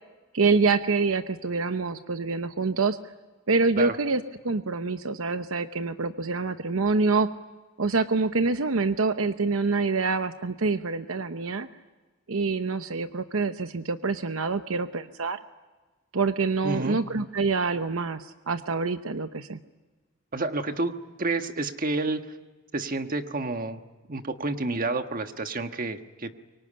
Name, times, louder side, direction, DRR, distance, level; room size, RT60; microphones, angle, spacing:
voice 1, 0.3-3.0 3.5-7.3 7.8-11.7 12.3-15.4 16.1-19.6, right 4 dB, 75° right, 10 dB, 0.9 m, -26 dB
voice 2, 16.6-17.0 20.3-22.2 22.7-23.8 24.1-26.3, right 3 dB, 40° right, 7 dB, 1.4 m, -29 dB
24.5 x 24.0 x 9.9 m, 1.3 s
head